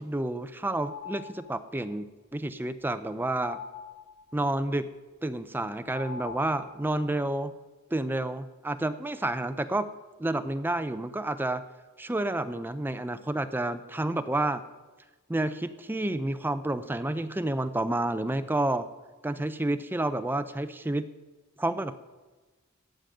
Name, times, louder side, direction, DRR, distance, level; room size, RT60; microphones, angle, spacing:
voice 1, 0.0-2.0 2.3-3.6 4.3-4.9 5.2-7.5 7.9-9.9 10.2-11.6 12.0-14.6 15.3-18.9 19.2-21.1 21.6-22.0, right 1 dB, 10° right, 11 dB, 0.4 m, -30 dB
sound 1, 0.7-1.7 3.4-4.4 5.9-7.0, left 7 dB, 70° left, 4.4 m, -43 dB
14.5 x 5.2 x 9.0 m, 1.2 s
head